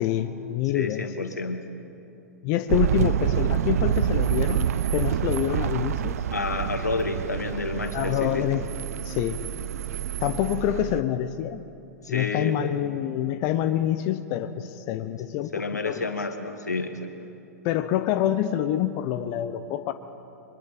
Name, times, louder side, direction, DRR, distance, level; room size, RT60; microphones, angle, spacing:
voice 1, 0.0-1.3 2.4-4.7 4.9-6.2 7.9-8.6 9.0-9.4 10.2-11.6 12.1-16.1 17.6-19.9, left 12 dB, 40° left, 10 dB, 0.8 m, -26 dB
voice 2, 0.7-1.7 6.3-8.5 12.0-12.6 15.5-17.1, left 3 dB, 85° left, 6 dB, 2.0 m, -30 dB
sound 1, 2.7-11.0, right 10 dB, 60° right, 0.6 m, -27 dB
30.0 x 24.0 x 4.3 m, 2.7 s
figure-of-eight pair, 105°, 9 cm